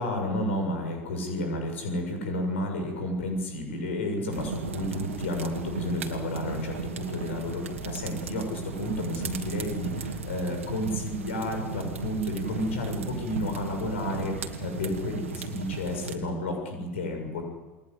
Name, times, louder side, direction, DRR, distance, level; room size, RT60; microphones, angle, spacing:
voice 1, 0.0-17.4, left 1 dB, 70° left, 4 dB, 6.9 m, -31 dB
sound 1, 4.3-16.2, right 5 dB, 80° right, 2.5 m, -36 dB
29.0 x 21.5 x 8.2 m, 1.2 s
figure-of-eight pair, 75°, 7 cm